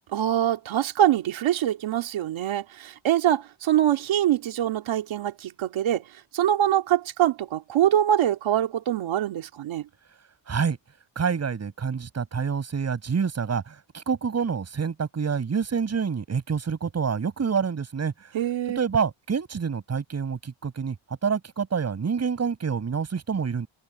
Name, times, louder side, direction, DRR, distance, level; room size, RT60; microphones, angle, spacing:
voice 1, 0.1-6.0 6.3-9.8 18.3-18.8, right 11 dB, 85° right, 2.6 m, -24 dB
voice 2, 10.5-10.8 11.2-18.3 18.8-20.9 21.2-23.7, right 6 dB, 35° right, 7.4 m, -27 dB
wide cardioid pair, 170°, 46 cm